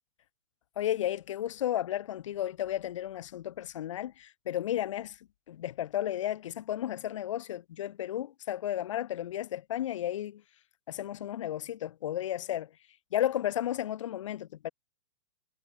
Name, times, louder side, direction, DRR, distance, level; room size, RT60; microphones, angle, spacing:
voice 1, 0.8-5.2 5.5-10.4 10.9-12.7 13.1-14.7, left 12 dB, 75° left, 1.8 m, -33 dB
hypercardioid pair, 140°, 16 cm